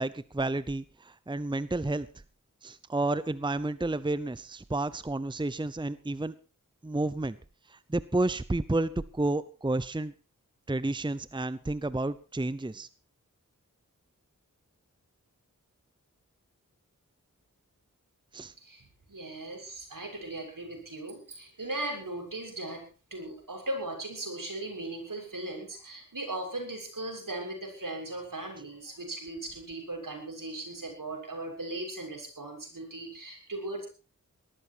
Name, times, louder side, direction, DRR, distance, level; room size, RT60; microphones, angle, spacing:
voice 1, 0.0-2.1 2.6-6.3 6.8-7.4 7.7-10.1 10.7-12.9 18.3-18.5, right 2 dB, 15° right, 16 dB, 0.7 m, -31 dB
voice 2, 18.6-22.8 23.1-33.9, right 2 dB, 75° right, 2 dB, 6.9 m, -38 dB
19.0 x 13.5 x 4.6 m, 0.34 s
wide cardioid pair, 65°, 33 cm